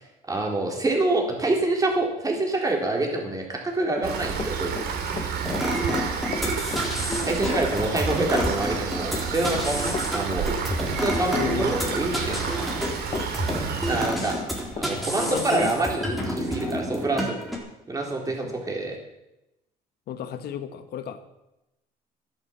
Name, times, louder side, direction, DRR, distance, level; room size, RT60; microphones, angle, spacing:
voice 1, 0.3-4.8 7.2-10.5 10.8-12.7 13.9-14.4 14.8-17.4 17.9-19.0, right 2 dB, 20° right, 1 dB, 3.9 m, -26 dB
Run, 3.7-14.9 15.2-16.1, left 6 dB, 35° left, 1.1 m, -36 dB
Rain, 4.0-14.1, right 6 dB, 70° right, 2.9 m, -30 dB
sound 1, 5.4-17.6, equal, ahead, 3.8 m, -29 dB
voice 2, 11.3-11.7 15.3-15.7 18.4-18.6 20.1-21.2, left 9 dB, 70° left, 10 dB, 1.5 m, -32 dB
12.5 x 11.0 x 7.5 m, 0.92 s
cardioid pair, 110°, 17 cm